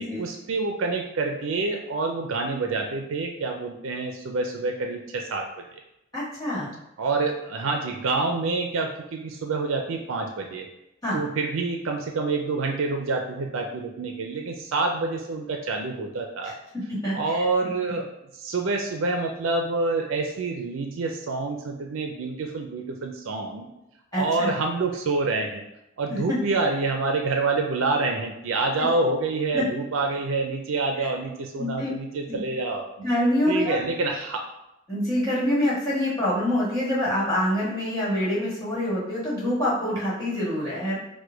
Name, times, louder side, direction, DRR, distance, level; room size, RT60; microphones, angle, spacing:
voice 1, 0.0-5.4 7.0-10.7 11.1-16.6 17.1-18.1 18.3-23.7 24.2-25.6 26.0-32.9 33.5-34.4, right 3 dB, 85° right, 3 dB, 0.5 m, -27 dB
voice 2, 6.1-6.7 11.0-11.2 16.7-17.4 17.9-18.0 24.1-24.5 26.1-26.4 29.5-29.6 31.0-31.1 31.6-31.9 32.3-32.4 33.0-33.8 34.9-41.0, left 1 dB, 20° left, -8 dB, 1.6 m, -26 dB
4.9 x 2.2 x 4.5 m, 0.87 s
head